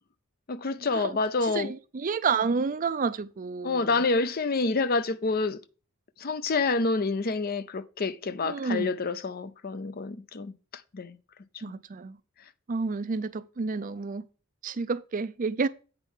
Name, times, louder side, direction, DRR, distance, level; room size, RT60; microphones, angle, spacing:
voice 1, 0.5-1.7 3.6-5.6 6.2-11.2, left 3 dB, 45° left, 0.6 m, -28 dB
voice 2, 1.4-4.0 8.4-8.9 11.6-12.2 12.7-14.2 14.6-15.7, right 4 dB, 40° right, 0.4 m, -30 dB
8.1 x 4.6 x 5.4 m
head